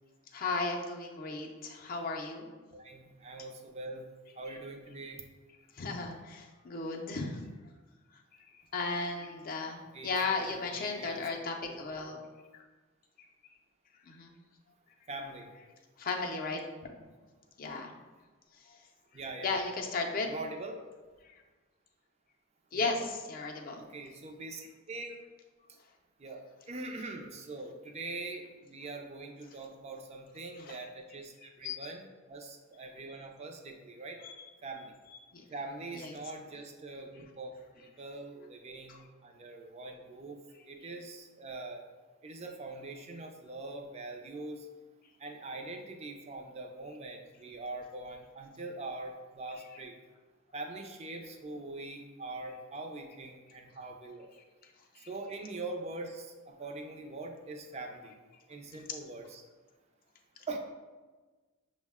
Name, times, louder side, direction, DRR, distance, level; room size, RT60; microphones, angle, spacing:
voice 1, 0.3-2.5 5.7-7.4 8.1-12.2 12.5-12.6 14.0-14.3 16.0-16.9 17.6-17.9 18.6-18.8 19.4-20.3 21.2-21.4 22.7-23.8 30.5-30.8 31.6-31.9 34.2-34.5 35.3-35.4 35.9-36.1 38.9-39.0 54.6-55.1, left 3 dB, 45° left, 1 dB, 0.5 m, -36 dB
voice 2, 2.7-4.1 4.4-5.2 9.9-11.3 11.7-11.8 15.1-15.5 19.1-19.5 20.2-20.8 22.7-23.0 23.8-25.2 25.7-25.8 26.2-34.2 34.6-35.0 35.5-41.8 42.2-44.7 45.2-50.0 50.5-54.3 55.0-58.2 58.5-59.4 60.5-60.6, right 2 dB, 30° right, 3 dB, 0.4 m, -43 dB
6.1 x 2.1 x 3.5 m, 1.3 s
head